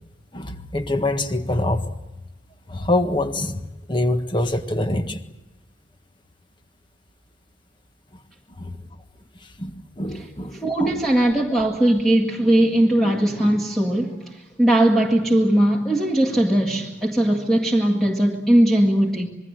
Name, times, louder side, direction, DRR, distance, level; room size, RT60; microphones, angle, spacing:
voice 1, 0.3-1.9 2.7-3.6 3.9-5.2 8.6-8.8 9.6-10.9, left 2 dB, 25° left, 1.6 m, -25 dB
voice 2, 10.5-19.3, right 1 dB, ahead, 1.8 m, -19 dB
26.5 x 22.0 x 7.9 m
head